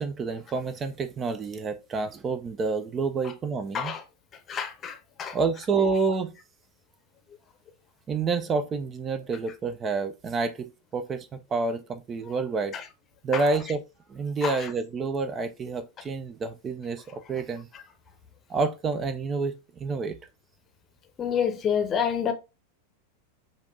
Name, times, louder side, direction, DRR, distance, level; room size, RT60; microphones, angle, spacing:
voice 1, 0.0-4.0 5.3-6.3 8.1-12.8 13.2-13.8 14.1-17.7 18.5-20.2, right 4 dB, 25° right, 0.4 m, -28 dB
voice 2, 4.5-5.4 13.3-13.4 14.4-14.6 21.2-22.3, left 8 dB, 25° left, 0.7 m, -28 dB
5.7 x 2.5 x 2.5 m
figure-of-eight pair, 90°, 0 cm